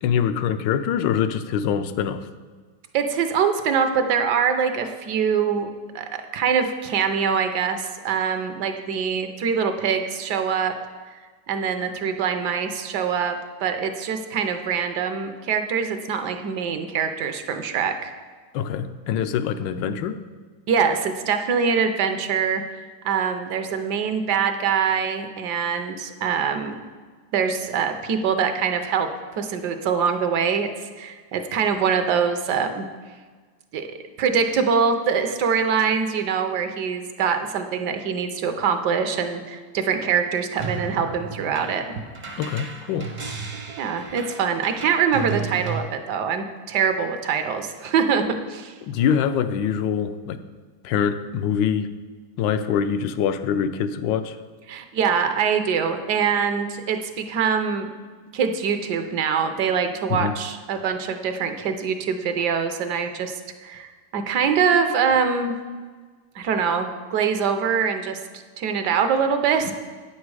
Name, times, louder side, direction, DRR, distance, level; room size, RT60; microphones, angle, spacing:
voice 1, 0.0-2.2 18.5-20.2 42.4-43.1 48.9-50.4 50.8-51.9 52.4-54.4 60.1-60.3, left 8 dB, 80° left, 10 dB, 1.2 m, -24 dB
voice 2, 2.9-5.7 5.9-10.7 11.1-11.2 11.5-18.1 20.7-26.7 27.3-30.7 31.0-32.9 33.7-33.9 34.2-41.8 43.8-48.7 54.7-57.9 58.3-63.3 63.6-65.5 66.4-68.2 68.6-69.7, right 6 dB, 70° right, 7 dB, 1.3 m, -24 dB
sound 1, 40.6-45.8, right 5 dB, 40° right, 0.6 m, -34 dB
9.0 x 7.4 x 4.7 m, 1.4 s
omnidirectional pair, 1.9 m